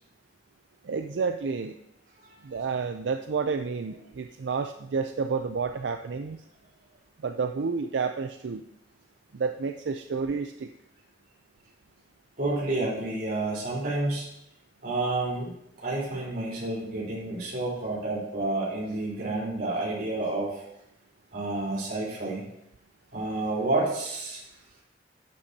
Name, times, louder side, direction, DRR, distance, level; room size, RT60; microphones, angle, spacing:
voice 1, 0.8-1.8 2.4-6.4 7.2-8.6 9.3-10.7, right 5 dB, 85° right, 8 dB, 0.4 m, -30 dB
voice 2, 12.4-14.3 14.8-20.7 21.3-22.4 23.1-24.4, right 2 dB, 60° right, -4 dB, 3.9 m, -30 dB
11.5 x 10.0 x 2.8 m, 0.81 s
head